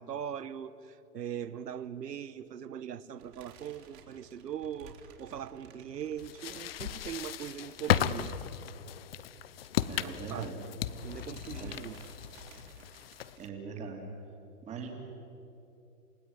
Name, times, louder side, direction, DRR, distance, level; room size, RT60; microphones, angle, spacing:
voice 1, 0.0-8.3 10.0-10.5 11.0-12.0, right 9 dB, 85° right, 14 dB, 1.2 m, -40 dB
sound 1, 3.2-8.7 9.0-9.2 9.5-9.6 10.5-10.8 11.1-13.5, right 6 dB, 40° right, 4.2 m, -56 dB
sound 2, 6.2-13.5, left 10 dB, 40° left, 0.8 m, -35 dB
voice 2, 9.9-10.5 11.6-11.8 13.4-14.1 14.6-14.9, right 5 dB, 15° right, 2 dB, 3.1 m, -41 dB
29.5 x 16.5 x 9.9 m, 2.8 s
hypercardioid pair, 155°, 48 cm